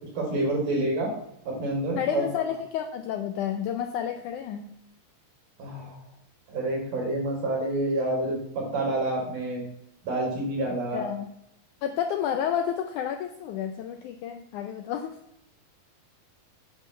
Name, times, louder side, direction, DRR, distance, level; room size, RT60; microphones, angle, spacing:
voice 1, 0.2-1.1 1.5-2.2 5.6-6.0 6.5-9.6 10.0-11.1, right 1 dB, 60° right, -2 dB, 5.4 m, -28 dB
voice 2, 2.0-4.7 10.9-11.3 11.8-15.2, left 9 dB, 80° left, 6 dB, 1.8 m, -30 dB
12.0 x 9.5 x 3.3 m, 0.77 s
omnidirectional pair, 4.2 m